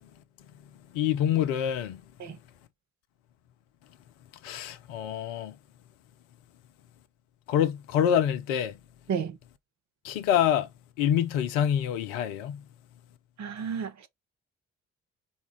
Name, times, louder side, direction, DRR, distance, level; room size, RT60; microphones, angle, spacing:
voice 1, 0.9-2.0 4.4-5.6 7.5-8.7 10.0-10.7 11.0-12.6, left 9 dB, 65° left, 0.6 m, -26 dB
voice 2, 13.4-14.1, right 7 dB, 45° right, 1.0 m, -32 dB
4.3 x 2.3 x 3.7 m
figure-of-eight pair, 40°, 38 cm